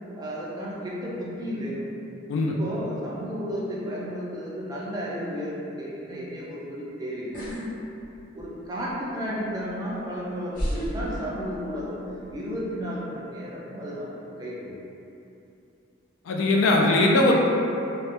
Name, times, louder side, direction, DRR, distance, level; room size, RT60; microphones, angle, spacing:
voice 1, 0.1-1.8 2.6-7.4 8.3-12.0 12.3-14.1 14.4-14.7, equal, 20° right, -6 dB, 0.3 m, -33 dB
sound 1, 7.3-7.6 8.0-8.6 9.7-9.8 10.5-11.9 12.2-12.6, equal, 45° left, 0.7 m, -31 dB
voice 2, 16.3-17.3, left 2 dB, 75° left, -1 dB, 0.3 m, -20 dB
2.2 x 2.1 x 2.8 m, 2.8 s
head